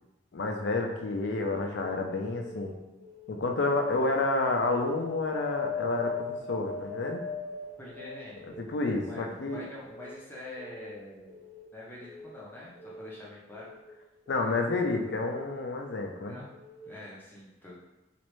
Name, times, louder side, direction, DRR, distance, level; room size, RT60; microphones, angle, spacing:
voice 1, 0.3-2.7 3.3-7.2 8.6-9.6 14.3-16.4, left 3 dB, 70° left, 3 dB, 0.5 m, -30 dB
Keyboard (musical) / Alarm, 2.2-2.6 3.0-3.4 3.7-4.1 4.5-4.9 5.2-5.6 6.0-6.4 6.7-7.1 7.5-7.9 8.2-8.6 9.0-9.4 9.7-10.1 10.5-10.9 11.2-11.6 12.0-12.4 12.7-13.1 13.5-13.9 14.3-14.6 15.0-15.4 15.8-16.1 16.5-16.9, left 1 dB, 30° right, 1.3 m, -49 dB
Wind, 5.0-8.5 9.1-10.1 10.9-11.0, left 4 dB, 75° right, 1.0 m, -38 dB
voice 2, 7.8-8.5 9.0-11.4 11.7-13.7 16.2-16.5 16.8-17.8, left 2 dB, 10° left, -6 dB, 0.6 m, -45 dB
3.1 x 2.5 x 3.1 m, 1.0 s
head